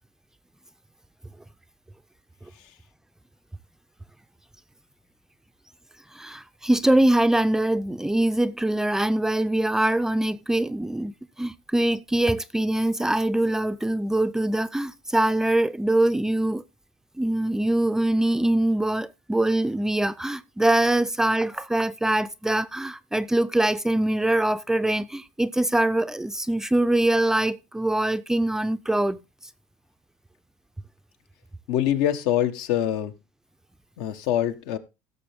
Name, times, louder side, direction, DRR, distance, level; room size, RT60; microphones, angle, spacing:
voice 1, 6.1-11.1 11.4-16.6 17.2-29.2, right 1 dB, 5° right, 0.5 m, -23 dB
voice 2, 31.7-33.1 34.0-34.8, left 11 dB, 75° left, 1.3 m, -24 dB
16.5 x 6.7 x 3.6 m
cardioid pair, 125°, 8 cm